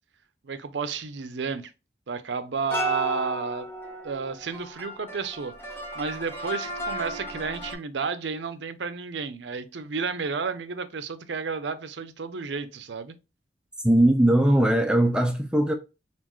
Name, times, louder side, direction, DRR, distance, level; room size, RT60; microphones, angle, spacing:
voice 1, 0.4-1.7 2.1-3.7 4.0-13.1, right 5 dB, 70° right, 0.6 m, -32 dB
sound 1, 2.6-7.7, right 1 dB, 15° left, 1.0 m, -34 dB
voice 2, 13.8-15.7, right 1 dB, 5° right, 0.4 m, -20 dB
4.3 x 3.9 x 3.0 m
head